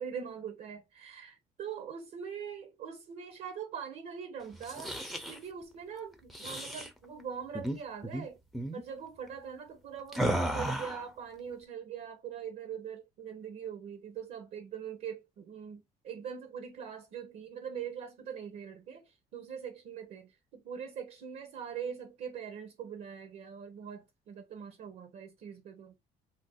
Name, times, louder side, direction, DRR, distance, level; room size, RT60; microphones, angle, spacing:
voice 1, 0.0-8.4 8.7-25.9, right 7 dB, 60° right, 0.7 m, -42 dB
sound 1, 4.5-5.4 6.3-6.9 7.5-7.8 8.0-8.2 8.5-8.8 10.1-11.1, right 1 dB, ahead, 0.5 m, -34 dB
2.6 x 2.0 x 3.8 m
cardioid pair, 110°, 17 cm